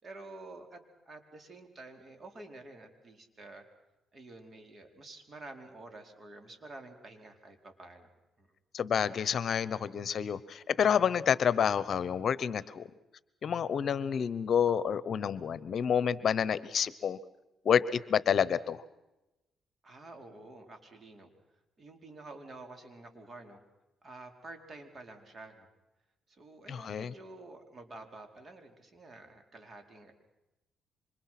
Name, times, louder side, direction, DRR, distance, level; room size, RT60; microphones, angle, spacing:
voice 1, 0.0-0.8 1.0-3.6 4.1-8.1 8.4-8.5 19.8-21.3 21.8-23.6 24.0-25.7 26.3-30.1, right 2 dB, 40° right, 5 dB, 4.8 m, -49 dB
voice 2, 8.7-12.9 13.4-17.2 17.6-18.8 26.7-27.1, left 8 dB, 55° left, 17 dB, 1.0 m, -29 dB
28.0 x 25.5 x 6.0 m, 0.97 s
cardioid pair, 90°, 0 cm